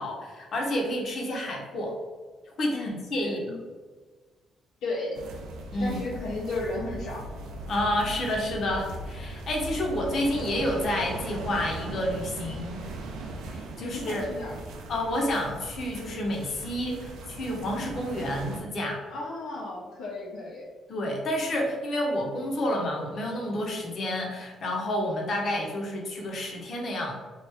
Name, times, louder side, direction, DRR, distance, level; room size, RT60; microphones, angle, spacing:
voice 1, 0.0-2.0 2.6-3.5 5.7-6.0 7.7-12.9 13.5-14.3 14.9-19.0 20.9-27.2, left 1 dB, 55° left, 0 dB, 0.9 m, -29 dB
voice 2, 2.7-3.6 4.8-5.2 5.8-7.3 13.8-14.6 19.1-20.7, left 2 dB, 85° left, -4 dB, 0.6 m, -34 dB
sound 1, 5.1-18.6, right 2 dB, 85° right, 0.4 m, -39 dB
3.1 x 2.5 x 3.3 m, 1.4 s
cardioid pair, 90°, 0 cm